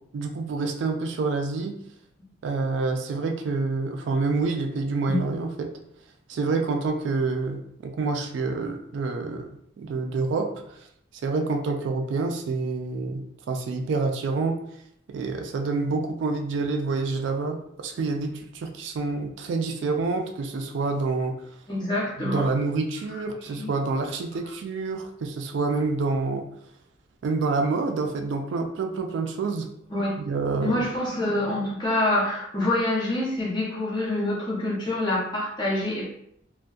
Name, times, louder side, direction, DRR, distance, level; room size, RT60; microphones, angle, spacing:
voice 1, 0.1-1.7 2.4-5.7 6.3-9.5 9.8-10.5 11.2-14.6 15.1-21.3 22.2-26.5 27.2-29.7 30.2-30.8, right 3 dB, 65° right, 5 dB, 0.3 m, -27 dB
voice 2, 21.7-22.5 23.1-23.2 23.5-23.7 29.9-30.1 30.6-36.1, left 1 dB, 25° left, -5 dB, 0.7 m, -26 dB
2.6 x 2.1 x 2.3 m, 0.71 s
head